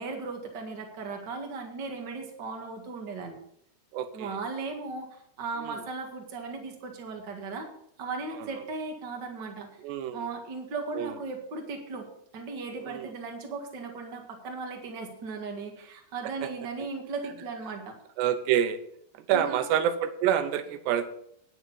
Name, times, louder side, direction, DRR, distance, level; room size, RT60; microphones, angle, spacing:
voice 1, 0.0-3.4 4.1-7.7 8.0-9.7 10.1-12.1 12.3-18.0 19.3-19.6, right 4 dB, 50° right, 2 dB, 1.3 m, -37 dB
voice 2, 3.9-4.4 5.6-5.8 8.4-8.6 9.8-10.3 10.9-11.2 12.8-13.1 16.4-16.5 18.2-18.8 19.1-21.1, right 10 dB, 80° right, 10 dB, 3.0 m, -28 dB
9.7 x 9.4 x 5.6 m, 0.69 s
omnidirectional pair, 4.8 m